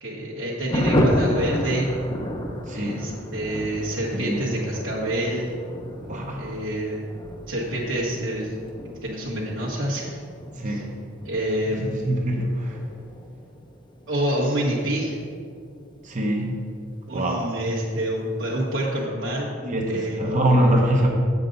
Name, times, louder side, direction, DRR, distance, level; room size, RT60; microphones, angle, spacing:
voice 1, 0.0-1.9 2.7-5.5 6.4-7.1 7.5-8.5 9.0-10.2 10.6-10.8 11.2-12.2 14.1-15.2 17.1-19.5 19.9-20.2, right 1 dB, 65° right, -6 dB, 1.4 m, -27 dB
Thunder, 0.7-16.8 17.1-17.2 17.5-17.6 17.9-18.3, left 1 dB, 25° left, 0.8 m, -31 dB
voice 2, 2.7-3.0 4.1-4.4 6.0-6.6 10.6-10.9 11.8-12.8 16.0-16.6 17.1-17.5 19.6-21.1, right 1 dB, 40° right, 0 dB, 1.0 m, -24 dB
8.2 x 7.2 x 3.9 m, 2.2 s
head